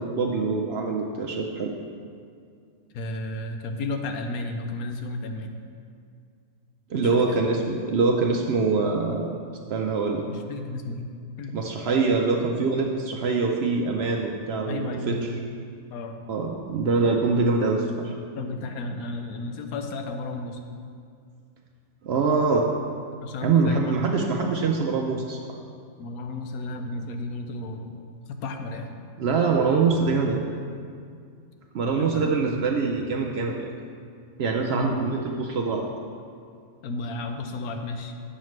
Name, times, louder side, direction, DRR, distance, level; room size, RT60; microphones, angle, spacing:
voice 1, 0.0-1.7 6.9-9.3 9.7-10.2 11.5-15.2 16.3-18.2 22.0-22.7 23.4-25.4 29.2-30.4 31.7-33.7 34.4-35.8, right 4 dB, 65° right, 1 dB, 0.6 m, -24 dB
voice 2, 2.9-5.6 7.0-7.4 10.3-11.1 11.4-11.6 14.7-15.4 15.9-16.1 18.3-20.6 23.2-24.5 26.0-27.9 28.3-28.9 32.0-32.3 34.7-35.2 36.8-38.1, left 2 dB, 90° left, 5 dB, 1.1 m, -33 dB
9.0 x 6.5 x 3.1 m, 2.3 s
omnidirectional pair, 1.5 m